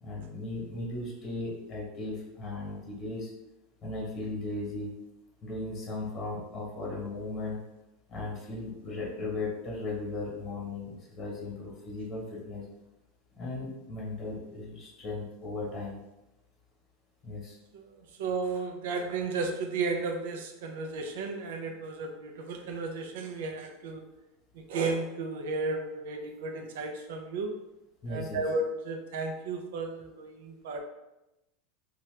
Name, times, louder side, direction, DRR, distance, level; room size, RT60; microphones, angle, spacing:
voice 1, 0.0-3.3 3.8-4.9 5.4-7.6 8.1-12.6 13.3-16.0 17.2-17.6 28.0-28.4, left 2 dB, 30° left, -4 dB, 1.1 m, -37 dB
voice 2, 17.7-24.1 24.5-27.5 28.1-30.8, right 3 dB, 80° right, 4 dB, 0.4 m, -34 dB
2.8 x 2.3 x 3.2 m, 0.97 s
supercardioid pair, 150°, 0 cm